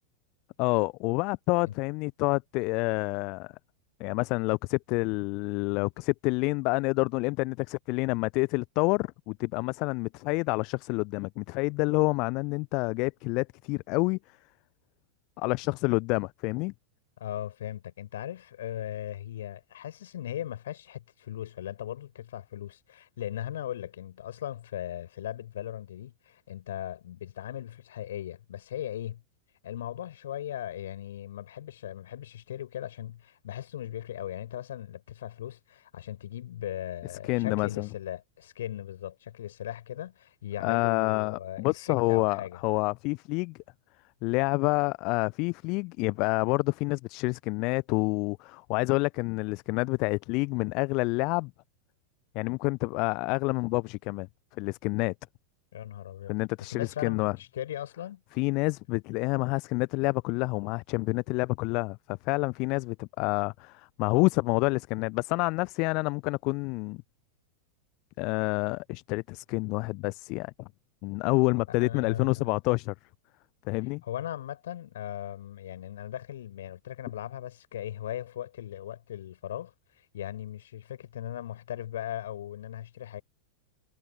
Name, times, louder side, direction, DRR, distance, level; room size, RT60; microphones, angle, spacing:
voice 1, 0.6-3.5 4.0-14.2 15.4-16.7 37.3-37.9 40.6-43.6 44.2-51.5 52.3-54.3 54.6-55.1 56.3-57.4 58.4-67.0 68.2-70.5 71.0-72.9 73.7-74.0, left 27 dB, 40° left, 0.6 m, -28 dB
voice 2, 17.2-29.2 29.6-42.6 55.7-56.4 56.7-58.2 71.8-72.5 74.0-79.7 80.1-83.2, left 11 dB, 60° left, 6.5 m, -38 dB
figure-of-eight pair, 90°, 0 cm